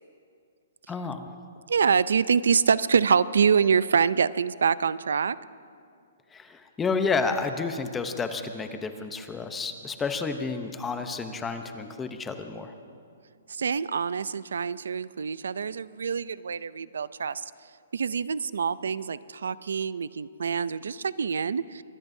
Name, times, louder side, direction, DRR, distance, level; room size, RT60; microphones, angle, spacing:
voice 1, 0.9-1.4 6.3-12.7, left 4 dB, 10° left, 8 dB, 0.7 m, -30 dB
voice 2, 1.7-5.4 13.5-17.4 17.9-21.8, right 6 dB, 85° right, 18 dB, 0.4 m, -25 dB
24.0 x 20.0 x 2.7 m, 2.3 s
hypercardioid pair, 165°, 0 cm